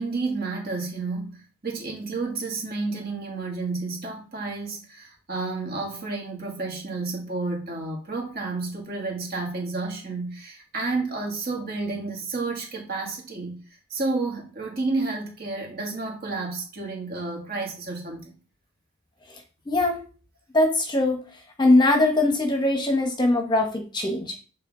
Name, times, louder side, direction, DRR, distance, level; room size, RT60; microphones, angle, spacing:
voice 1, 0.0-13.6 13.9-18.3, right 3 dB, 45° right, 2.2 m, -31 dB
voice 2, 19.7-20.0 20.5-21.2 21.6-24.3, left 2 dB, 20° left, 1.0 m, -21 dB
8.4 x 3.6 x 3.7 m
head